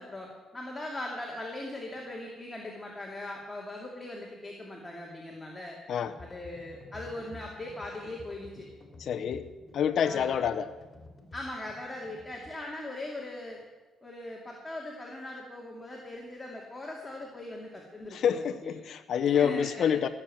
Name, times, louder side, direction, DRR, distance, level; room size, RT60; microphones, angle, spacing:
voice 1, 0.0-5.8 6.2-8.7 10.0-10.4 11.3-13.6 14.0-18.8 19.2-20.0, left 1 dB, 15° left, -2 dB, 2.6 m, -40 dB
sound 1, 6.0-12.5, left 3 dB, 30° left, 3.1 m, -51 dB
voice 2, 9.0-9.4 9.7-10.7 18.1-20.1, left 8 dB, 65° left, 10 dB, 0.8 m, -27 dB
16.5 x 7.4 x 7.8 m, 1.3 s
cardioid pair, 90°, 0 cm